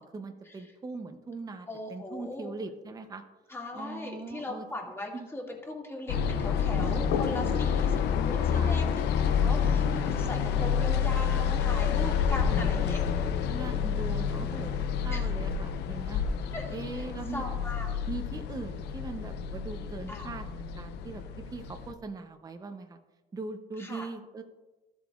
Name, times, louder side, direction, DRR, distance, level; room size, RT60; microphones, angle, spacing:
voice 1, 0.0-3.2 3.7-4.7 5.1-5.3 6.9-7.6 8.5-8.8 12.5-12.9 13.5-16.2 16.7-17.4 18.1-20.5 20.7-23.0 23.3-24.4, right 3 dB, 20° right, 6 dB, 0.6 m, -40 dB
voice 2, 1.7-2.5 3.5-8.9 9.4-13.0 15.1-15.2 16.5-16.7 17.3-18.0 20.1-20.3 23.8-24.1, left 1 dB, 15° left, -1 dB, 2.1 m, -39 dB
sound 1, 6.1-21.9, left 7 dB, 80° left, 0.6 m, -28 dB
13.0 x 7.6 x 2.4 m, 1.2 s
cardioid pair, 110°, 17 cm